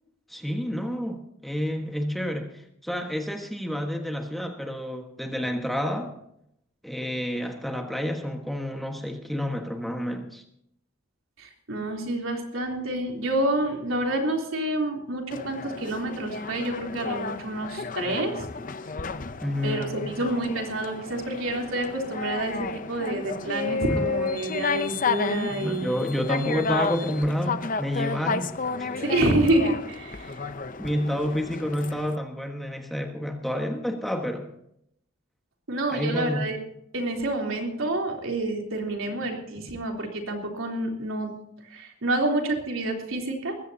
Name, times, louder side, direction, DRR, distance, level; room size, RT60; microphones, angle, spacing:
voice 1, 0.3-6.1 6.8-10.4 19.4-20.2 23.9-24.1 25.5-28.9 30.8-34.5 35.9-36.5, equal, ahead, 3 dB, 1.4 m, -29 dB
voice 2, 11.4-18.5 19.6-25.9 27.0-27.2 29.0-30.4 35.7-36.6 36.9-41.3 41.7-43.6, right 1 dB, 90° right, 1 dB, 3.4 m, -28 dB
sound 1, 15.3-32.1, left 4 dB, 40° left, 0.7 m, -32 dB
21.0 x 16.0 x 2.8 m, 0.74 s
head